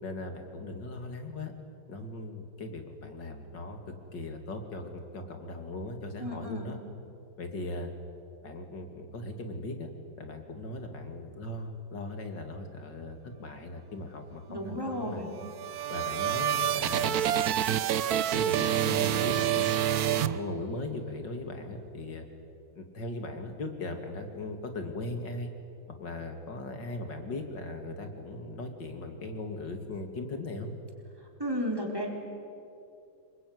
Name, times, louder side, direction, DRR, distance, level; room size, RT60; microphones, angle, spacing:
voice 1, 0.0-1.5 1.9-3.8 4.1-6.8 7.4-7.9 8.4-9.9 10.2-15.2 15.9-17.2 18.1-19.7 20.1-22.3 22.7-25.5 26.0-30.7, left 2 dB, 60° left, 5 dB, 3.2 m, -38 dB
voice 2, 6.2-6.7 14.5-15.3 31.4-32.1, equal, 10° right, 0 dB, 4.2 m, -33 dB
guitar and synth, 15.4-21.0, right 10 dB, 60° right, 1.1 m, -28 dB
26.5 x 23.0 x 9.6 m, 2.6 s
omnidirectional pair, 2.2 m